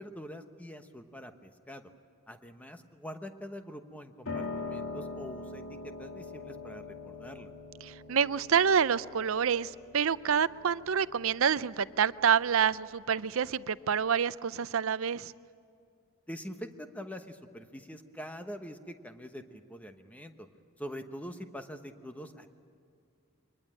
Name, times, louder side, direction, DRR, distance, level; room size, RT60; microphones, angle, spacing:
voice 1, 0.0-1.8 2.3-7.5 16.3-20.5 20.8-22.5, equal, 5° left, 1.1 m, -44 dB
Piano, 4.3-14.2, left 3 dB, 70° left, 3.0 m, -43 dB
voice 2, 7.8-15.3, right 7 dB, 65° right, 0.5 m, -27 dB
24.0 x 20.5 x 8.8 m
head